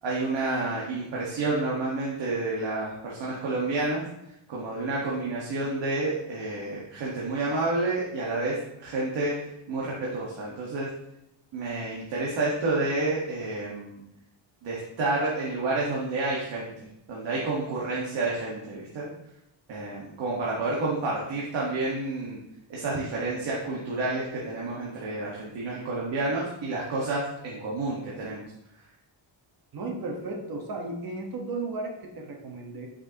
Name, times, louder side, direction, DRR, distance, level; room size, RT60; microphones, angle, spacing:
voice 1, 0.0-4.0 4.5-8.6 8.8-9.3 9.7-10.9 11.5-14.0 14.6-19.1 19.7-22.4 22.7-28.4, right 2 dB, 65° right, -5 dB, 1.5 m, -29 dB
voice 2, 29.7-32.9, right 2 dB, 45° right, 1 dB, 1.2 m, -34 dB
7.9 x 5.9 x 2.9 m, 0.86 s
wide cardioid pair, 175°, 47 cm